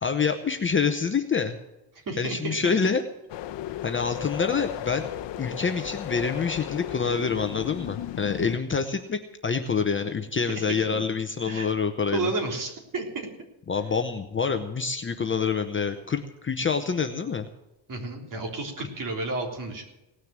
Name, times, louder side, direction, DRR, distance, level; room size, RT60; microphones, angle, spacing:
voice 1, 0.0-1.6 2.2-3.0 3.8-5.0 5.4-12.3 13.7-17.5 18.8-18.9, left 5 dB, 25° left, 6 dB, 0.9 m, -27 dB
voice 2, 2.1-2.7 10.5-10.8 11.4-11.7 12.1-13.3 17.9-19.8, right 2 dB, 40° right, 2 dB, 3.6 m, -31 dB
sound 1, 3.3-8.6, left 12 dB, 60° left, 0.8 m, -35 dB
18.0 x 6.6 x 8.8 m, 0.94 s
cardioid pair, 140°, 50 cm